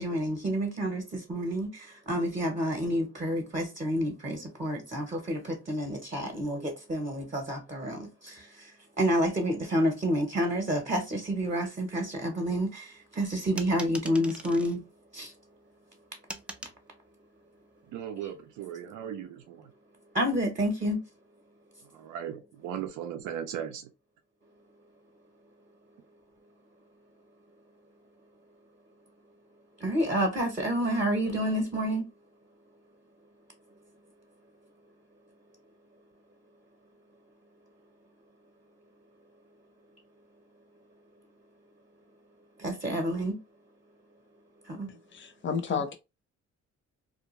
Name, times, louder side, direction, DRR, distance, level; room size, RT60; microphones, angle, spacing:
voice 1, 0.0-14.8 15.1-15.3 18.2-18.3 20.1-21.0 29.8-32.1 42.6-43.4 44.6-44.9 45.7-45.8, equal, 25° right, 0.7 m, -29 dB
sound 1, 13.6-14.8 16.3-16.8, right 1 dB, 5° right, 0.3 m, -41 dB
voice 2, 17.9-19.7 21.9-23.9, right 9 dB, 80° right, 0.5 m, -37 dB
voice 3, 45.1-46.0, left 6 dB, 40° left, 0.5 m, -31 dB
2.3 x 2.1 x 2.9 m
cardioid pair, 90°, 30 cm